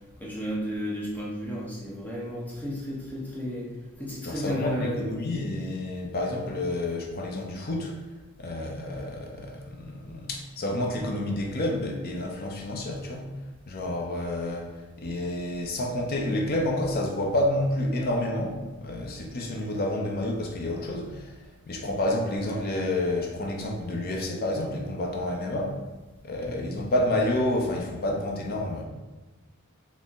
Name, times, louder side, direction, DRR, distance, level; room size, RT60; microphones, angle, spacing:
voice 1, 0.2-3.7 4.0-5.1 26.4-26.8, equal, 10° left, -6 dB, 0.8 m, -33 dB
voice 2, 4.2-8.0 8.4-13.3 13.7-21.4 21.7-25.8 26.2-28.8, left 1 dB, 45° left, 1 dB, 0.6 m, -29 dB
4.2 x 2.0 x 3.5 m, 1.2 s
head